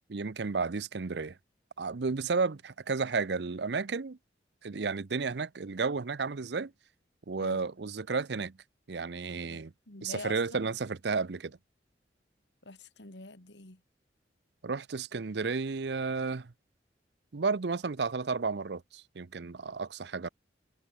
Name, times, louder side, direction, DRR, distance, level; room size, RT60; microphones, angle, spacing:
voice 1, 0.1-1.3 1.8-4.2 4.6-6.7 7.3-8.5 8.9-9.7 10.0-11.6 14.6-16.5 17.3-20.3, right 4 dB, 70° right, 0.6 m, -32 dB
voice 2, 7.4-7.7 9.5-10.7 12.6-13.8, left 2 dB, 75° left, 2.8 m, -46 dB
head